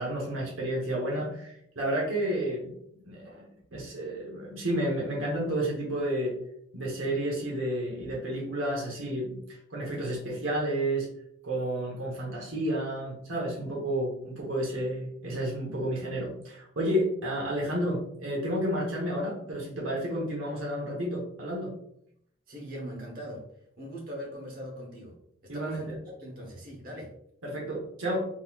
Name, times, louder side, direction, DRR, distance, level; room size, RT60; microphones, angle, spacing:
voice 1, 0.0-2.7 3.0-6.4 6.7-9.4 9.7-11.1 11.4-21.7 25.5-25.9 27.4-28.3, right 1 dB, 75° right, -3 dB, 1.0 m, -31 dB
voice 2, 22.5-23.4 23.8-25.1 25.5-27.1, equal, 45° right, -2 dB, 1.1 m, -40 dB
3.7 x 3.0 x 2.3 m, 0.72 s
head